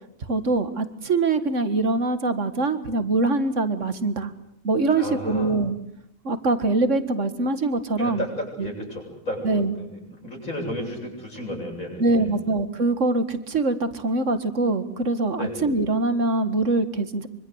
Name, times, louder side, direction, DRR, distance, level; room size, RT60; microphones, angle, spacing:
voice 1, 0.3-4.3 4.6-5.8 6.2-8.3 8.6-8.7 9.4-9.8 12.0-17.3, right 3 dB, 60° right, 11 dB, 2.2 m, -23 dB
voice 2, 4.9-5.5 8.0-12.3 15.4-15.5, left 1 dB, 80° left, 1 dB, 8.5 m, -33 dB
25.0 x 25.0 x 8.1 m, 0.76 s
omnidirectional pair, 1.4 m